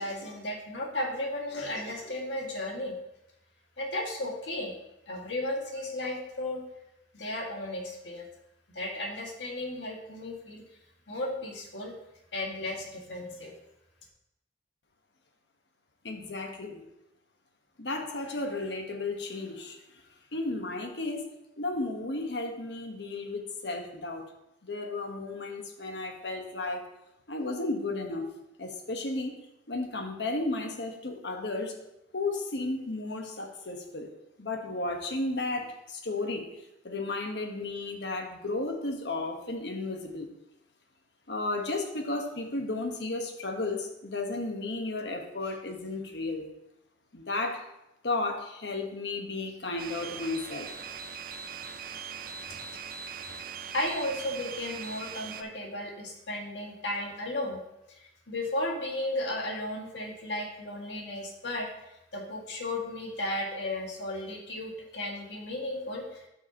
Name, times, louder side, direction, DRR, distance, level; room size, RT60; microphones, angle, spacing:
voice 1, 0.0-3.0 3.8-4.7 5.1-6.6 7.1-8.3 8.7-10.6 11.1-11.9 12.3-13.5 53.7-57.6 57.9-61.7 62.1-66.2, left 1 dB, 85° left, -1 dB, 1.9 m, -34 dB
voice 2, 16.0-16.8 17.8-19.8 20.3-21.3 21.6-24.3 24.6-26.8 27.3-28.3 28.6-29.4 29.7-31.7 32.1-34.1 34.4-36.5 36.8-40.3 41.3-46.5 47.1-47.6 48.0-50.7, left 2 dB, 70° left, 3 dB, 1.2 m, -33 dB
sound 1, 49.8-55.4, right 6 dB, 55° right, 0.5 m, -40 dB
12.0 x 5.8 x 2.9 m, 0.87 s
head